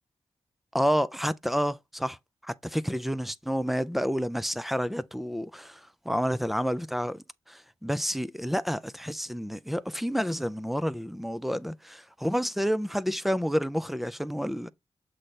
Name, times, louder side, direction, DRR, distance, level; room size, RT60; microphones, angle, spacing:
voice 1, 0.7-2.2 2.4-14.7, equal, ahead, 0.5 m, -29 dB
7.6 x 3.3 x 4.2 m
wide cardioid pair, 100°, 11 cm